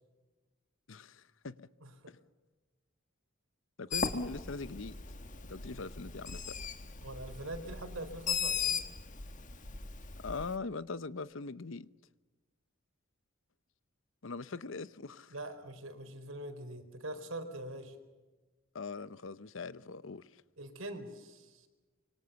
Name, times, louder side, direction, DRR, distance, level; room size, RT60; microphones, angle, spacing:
voice 1, 0.9-1.6 2.1-2.2 3.8-4.9 5.5-6.5 10.2-11.9 14.2-15.3 18.7-20.4, left 3 dB, 65° left, 0.8 m, -41 dB
voice 2, 1.8-2.1 7.0-8.8 15.3-18.0 20.6-21.7, right 1 dB, 75° right, 4.4 m, -43 dB
Bird, 3.9-10.6, left 6 dB, 40° left, 1.7 m, -38 dB
26.0 x 24.0 x 7.0 m
head